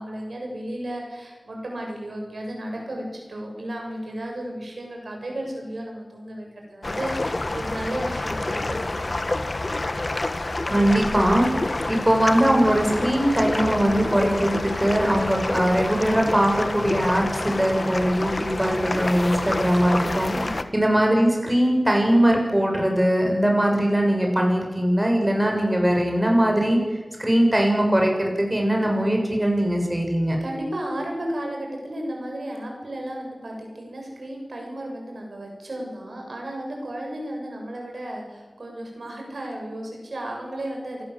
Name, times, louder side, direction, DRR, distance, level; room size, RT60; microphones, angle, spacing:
voice 1, 0.0-9.2 20.3-20.6 30.4-41.0, right 1 dB, 90° right, 1 dB, 7.4 m, -34 dB
sound 1, 6.8-20.6, left 2 dB, 50° left, 1.6 m, -28 dB
voice 2, 10.7-11.5 11.9-20.3 20.7-26.8 27.2-30.4, right 1 dB, 20° right, 1 dB, 7.1 m, -21 dB
27.0 x 19.5 x 8.0 m, 1.3 s
wide cardioid pair, 65°, 0 cm